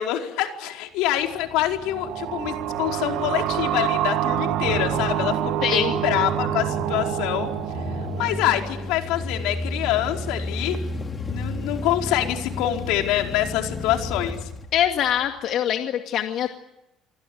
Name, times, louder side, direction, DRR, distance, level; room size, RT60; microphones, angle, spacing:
voice 1, 0.0-7.5 8.2-10.8 11.3-14.4, left 13 dB, 85° left, 3 dB, 4.7 m, -25 dB
sound 1, 1.1-15.4, left 2 dB, 25° left, 2.8 m, -34 dB
sound 2, 1.8-9.2, right 12 dB, 75° right, 1.7 m, -27 dB
voice 2, 5.6-5.9 14.7-16.6, left 10 dB, 60° left, 4 dB, 2.2 m, -23 dB
28.0 x 25.0 x 8.0 m, 0.91 s
cardioid pair, 130°, 0 cm